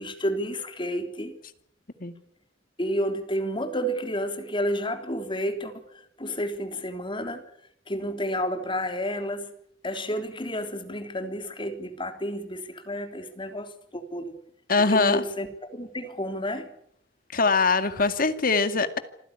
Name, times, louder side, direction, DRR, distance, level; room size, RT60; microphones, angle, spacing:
voice 1, 0.0-1.4 2.8-5.9 6.2-7.4 7.9-9.5 9.8-14.3 14.8-15.5 15.7-16.7, equal, 30° left, 7 dB, 3.5 m, -30 dB
voice 2, 14.7-15.2 17.3-19.0, left 4 dB, 50° left, 10 dB, 2.1 m, -22 dB
26.5 x 15.5 x 9.9 m, 0.70 s
head